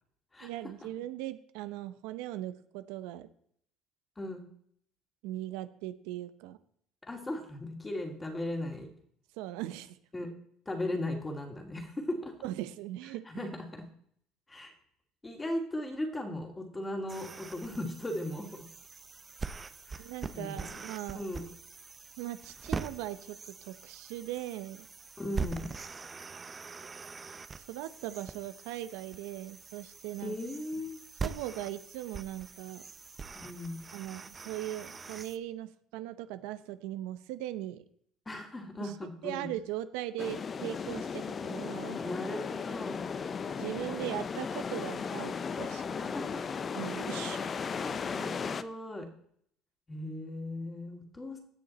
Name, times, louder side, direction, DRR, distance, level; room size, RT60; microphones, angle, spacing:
voice 1, 0.4-3.3 5.2-6.6 9.4-10.0 12.4-13.5 20.0-21.3 22.2-24.9 27.6-30.4 31.2-32.8 33.9-37.8 38.8-39.0 39.2-42.0 43.6-46.0 46.7-47.5, right 14 dB, 85° right, 12 dB, 0.7 m, -39 dB
voice 2, 7.0-8.9 10.1-10.3 10.7-12.3 13.3-13.8 14.5-14.7 15.2-18.6 19.9-20.8 21.1-21.4 25.2-25.7 30.2-31.0 33.4-33.8 38.3-39.5 42.0-43.0 43.9-44.0 46.0-46.4 47.7-49.1 49.9-51.4, left 1 dB, 15° left, 4 dB, 2.5 m, -37 dB
sound 1, 17.1-35.4, right 4 dB, 25° right, 0.7 m, -43 dB
sound 2, 40.2-48.6, left 6 dB, 30° left, 0.6 m, -36 dB
17.0 x 6.6 x 4.1 m, 0.65 s
cardioid pair, 115°, 0 cm